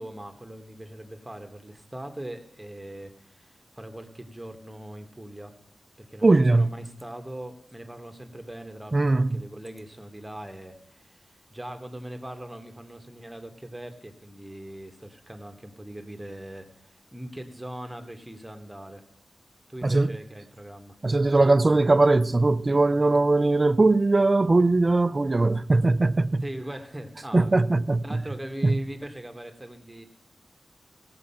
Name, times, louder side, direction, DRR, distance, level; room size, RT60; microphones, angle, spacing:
voice 1, 0.0-5.5 6.0-19.0 19.7-21.0 26.4-27.5 28.0-30.1, right 1 dB, 15° right, 1.4 m, -40 dB
voice 2, 6.2-6.7 8.9-9.4 19.8-20.1 21.0-26.4 27.3-28.2 28.6-28.8, right 2 dB, 35° right, 0.5 m, -20 dB
16.5 x 7.7 x 5.6 m
wide cardioid pair, 75°, 0 cm